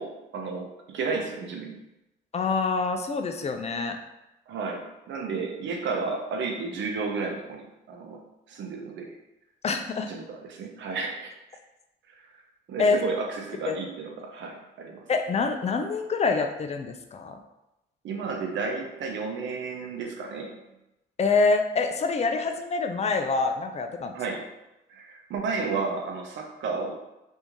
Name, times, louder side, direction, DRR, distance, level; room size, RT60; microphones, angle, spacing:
voice 1, 0.0-1.8 4.5-8.2 8.5-9.2 10.0-11.3 12.7-15.0 18.0-20.6 24.1-24.5 24.9-27.0, right 4 dB, 70° right, 2 dB, 0.7 m, -32 dB
voice 2, 2.3-4.0 9.6-10.1 12.8-13.0 13.7-13.8 15.1-17.4 21.2-24.1, left 4 dB, 35° left, 5 dB, 0.4 m, -26 dB
3.0 x 2.6 x 3.5 m, 0.93 s
cardioid pair, 90°, 20 cm